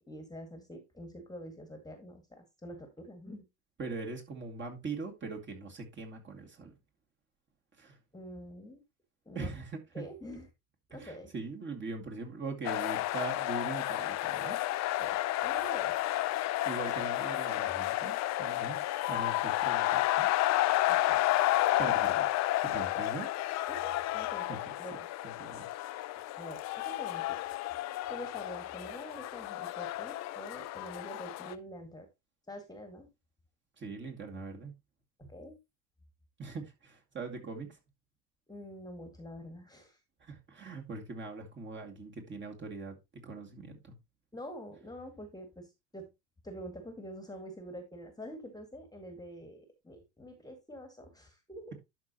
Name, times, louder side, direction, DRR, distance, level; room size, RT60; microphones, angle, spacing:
voice 1, 0.1-3.5 8.1-8.8 9.3-9.5 9.9-10.5 10.9-11.3 15.0-16.0 20.9-21.2 23.7-25.1 26.4-27.4 28.1-32.1 32.5-33.1 35.2-35.6 38.5-40.0 44.3-46.1 46.4-51.7, equal, 10° left, 1.8 m, -46 dB
voice 2, 3.8-6.7 7.8-8.0 9.3-10.0 11.0-14.6 16.7-18.8 19.1-20.3 21.8-22.3 22.6-23.3 24.5-24.7 25.2-25.7 33.8-34.7 35.2-35.3 36.4-37.8 40.2-43.0 43.2-44.0, right 3 dB, 25° right, 2.3 m, -41 dB
sound 1, 12.6-31.5, left 16 dB, 35° left, 0.6 m, -31 dB
11.5 x 4.9 x 2.9 m
hypercardioid pair, 95°, 47 cm